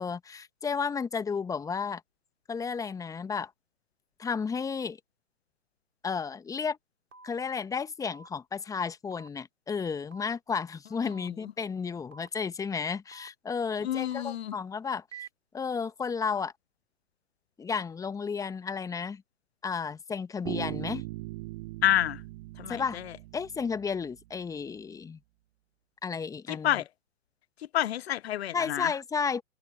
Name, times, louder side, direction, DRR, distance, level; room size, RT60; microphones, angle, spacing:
voice 1, 0.0-2.0 2.5-3.5 4.2-5.0 6.0-6.8 7.2-15.0 15.5-16.5 17.6-19.2 19.6-21.0 22.7-23.0 23.3-25.2 26.0-26.8 28.5-29.4, left 5 dB, 10° left, 1.4 m, -32 dB
sound 1, 7.1-7.3 8.1-8.3 9.1-9.3 10.1-10.3 11.1-11.3 12.1-12.3 13.1-13.3 14.1-14.3 15.1-15.3, right 6 dB, 70° right, 4.9 m, -47 dB
voice 2, 13.8-14.6 21.8-22.2 22.6-23.1 26.5-26.8 27.7-28.9, left 12 dB, 55° left, 0.6 m, -28 dB
Bass guitar, 20.5-24.2, right 20 dB, 40° right, 3.9 m, -39 dB
figure-of-eight pair, 120°, 38 cm